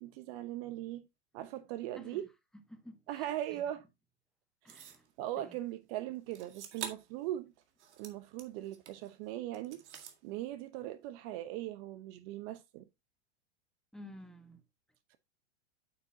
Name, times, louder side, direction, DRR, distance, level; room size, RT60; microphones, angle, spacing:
voice 1, 0.0-1.1 1.3-2.3 3.1-3.8 4.6-4.7 5.2-7.5 8.0-9.8 10.2-12.9, right 13 dB, 55° right, 0.9 m, -39 dB
voice 2, 2.7-3.6 4.6-5.1 5.4-5.6 13.9-14.6, left 1 dB, ahead, 1.3 m, -52 dB
sound 1, 4.7-5.1 6.3-7.2 7.6-9.1 9.5-10.2, right 9 dB, 75° right, 2.0 m, -46 dB
8.3 x 6.6 x 2.7 m
hypercardioid pair, 110°, 35 cm